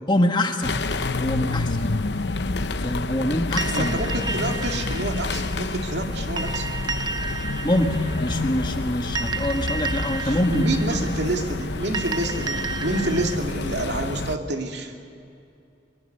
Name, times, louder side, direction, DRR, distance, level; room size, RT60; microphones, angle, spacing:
voice 1, 0.1-0.9 1.2-1.9 2.8-4.0 7.6-11.1, left 1 dB, 25° left, 4 dB, 1.6 m, -25 dB
sound 1, 0.6-14.4, left 3 dB, 75° left, 0.8 m, -28 dB
sound 2, 3.6-13.4, right 4 dB, 25° right, 0.7 m, -33 dB
voice 2, 3.7-6.8 10.2-14.9, right 1 dB, 70° right, 3 dB, 2.4 m, -27 dB
23.5 x 23.0 x 6.8 m, 2.6 s
head